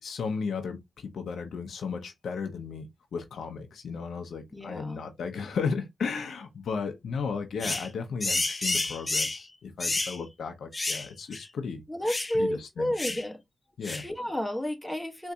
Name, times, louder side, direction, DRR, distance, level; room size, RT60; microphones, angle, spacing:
voice 1, 0.0-11.8 12.3-12.9 13.8-14.1, left 5 dB, 85° left, 0.6 m, -35 dB
voice 2, 4.5-5.0 11.9-13.4 14.0-15.3, left 1 dB, 5° left, 1.0 m, -31 dB
sound 1, 7.6-7.9 8.2-9.4 9.8-10.2 10.7-11.1 11.3-11.4 12.1-12.3 13.0-13.2 13.8-14.1, left 2 dB, 30° left, 0.3 m, -30 dB
3.8 x 2.6 x 2.2 m
cardioid pair, 65°, 0 cm